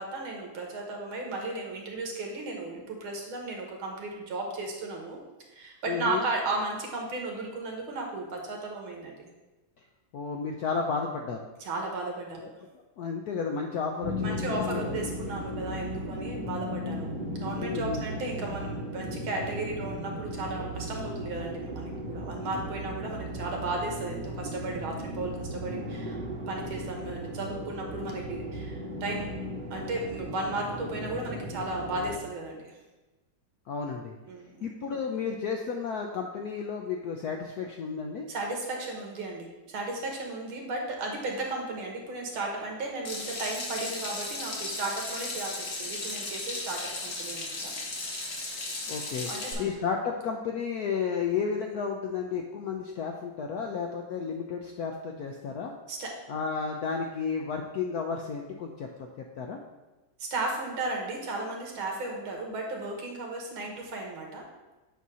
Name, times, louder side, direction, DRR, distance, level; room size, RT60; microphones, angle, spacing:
voice 1, 0.0-5.2 5.5-9.2 11.6-12.5 14.2-17.1 17.4-26.2 26.5-29.4 29.7-32.8 34.3-34.7 38.3-47.7 49.3-49.7 55.9-56.1 60.2-64.4, right 2 dB, 80° right, 1 dB, 2.1 m, -35 dB
voice 2, 5.9-6.2 10.1-11.4 13.0-15.0 17.6-18.0 33.7-34.1 34.6-38.3 48.9-49.3 49.6-55.7 56.3-58.9 59.2-59.6, left 6 dB, 75° left, 2 dB, 0.8 m, -32 dB
sound 1, 14.0-32.2, equal, 35° right, 0.8 m, -36 dB
Water tap faucet / Sink (filling or washing), 43.0-49.5, left 2 dB, 45° left, 1.4 m, -36 dB
8.2 x 2.7 x 6.1 m, 1.1 s
omnidirectional pair, 2.2 m